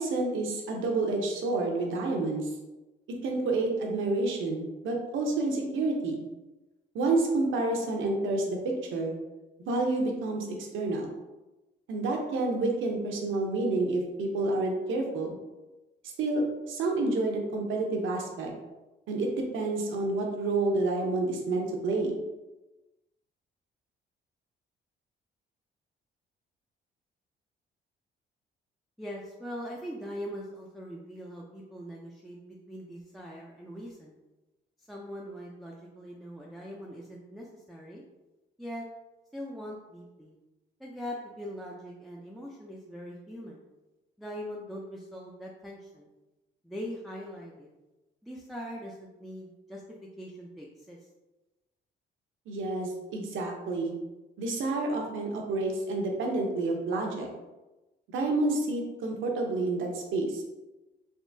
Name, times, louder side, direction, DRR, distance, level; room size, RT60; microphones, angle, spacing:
voice 1, 0.0-2.5 3.2-6.2 6.9-9.1 9.7-11.1 11.9-15.4 16.2-18.5 19.1-22.2 52.5-53.9 54.4-57.3 58.1-60.4, right 2 dB, 80° right, 1 dB, 0.8 m, -29 dB
voice 2, 29.0-34.1 34.9-38.0 38.6-38.9 39.3-40.4 40.8-43.6 44.2-46.1 46.6-47.7 48.2-49.8 50.2-51.0, equal, ahead, -4 dB, 0.4 m, -41 dB
3.6 x 2.8 x 2.6 m, 1.1 s
cardioid pair, 90°, 20 cm